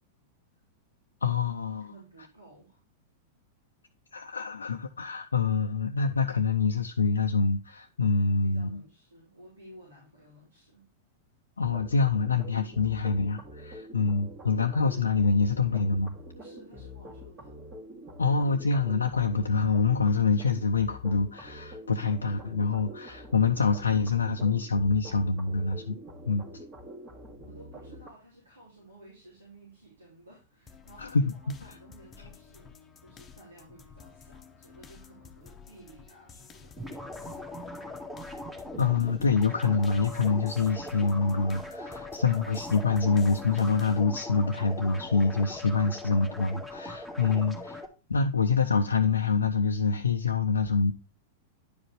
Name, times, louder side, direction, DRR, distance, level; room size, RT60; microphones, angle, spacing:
voice 1, 1.2-1.9 4.1-8.8 11.6-16.1 18.2-26.0 26.3-26.4 31.0-31.5 38.8-47.8 48.1-50.9, left 4 dB, 75° left, 0.5 m, -26 dB
voice 2, 1.8-2.8 8.4-10.9 12.7-12.9 13.9-14.1 16.3-17.6 26.4-26.5 27.4-37.5, right 1 dB, 85° right, 3.5 m, -54 dB
sound 1, 11.6-28.1, equal, 25° right, 2.3 m, -46 dB
sound 2, 30.7-44.0, left 6 dB, 20° left, 1.0 m, -52 dB
sound 3, 36.8-47.9, left 1 dB, 5° right, 1.7 m, -40 dB
10.0 x 5.0 x 3.1 m
figure-of-eight pair, 95°, 0 cm